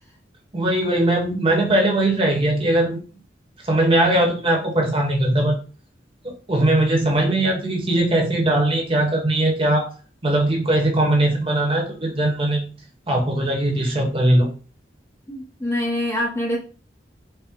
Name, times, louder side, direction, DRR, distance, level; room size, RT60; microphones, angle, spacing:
voice 1, 0.5-3.0 3.7-5.6 6.2-9.9 10.2-12.7 13.1-14.5, right 1 dB, 30° right, 1 dB, 1.0 m, -20 dB
voice 2, 15.3-16.6, left 1 dB, 15° left, -1 dB, 0.7 m, -25 dB
4.3 x 2.1 x 3.6 m, 0.37 s
head